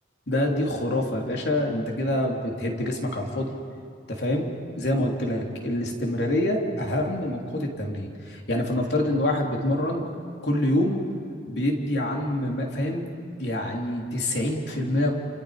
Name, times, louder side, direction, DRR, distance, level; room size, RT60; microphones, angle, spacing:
voice 1, 0.3-3.5 4.1-4.4 4.7-10.0 10.4-11.0 11.5-13.0 13.4-15.1, left 1 dB, 70° left, 0 dB, 3.3 m, -26 dB
29.5 x 28.0 x 5.1 m, 2.3 s
head